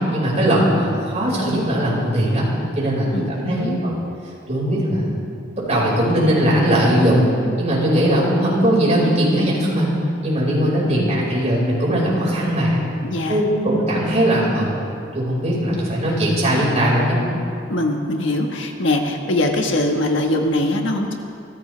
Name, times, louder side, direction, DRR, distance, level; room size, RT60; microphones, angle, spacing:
voice 1, 0.1-2.4 2.8-4.0 4.5-5.1 5.6-7.3 7.6-9.9 10.2-12.8 13.3-14.7 15.1-17.2, equal, 35° right, -5 dB, 5.3 m, -19 dB
voice 2, 3.1-3.8 13.0-13.5 17.7-21.1, left 1 dB, 70° left, 2 dB, 1.6 m, -22 dB
27.5 x 15.0 x 3.4 m, 2.5 s
head